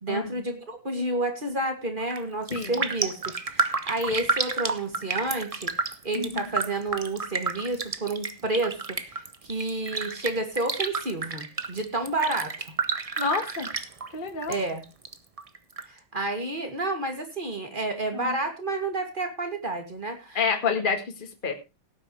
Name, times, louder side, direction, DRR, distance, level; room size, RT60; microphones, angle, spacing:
voice 1, 0.0-5.7 6.0-12.7 14.5-14.8 15.9-20.4, right 2 dB, 25° right, 5 dB, 2.6 m, -30 dB
Raindrop, 2.0-2.2 2.5-14.6 14.8-15.8 16.2-16.3, right 4 dB, 45° right, 0.4 m, -31 dB
voice 2, 2.5-2.8 6.1-6.5 13.2-13.7 14.1-14.6 18.1-18.3 20.3-21.5, left 5 dB, 25° left, 4 dB, 2.0 m, -28 dB
17.5 x 9.4 x 3.3 m, 0.27 s
omnidirectional pair, 2.1 m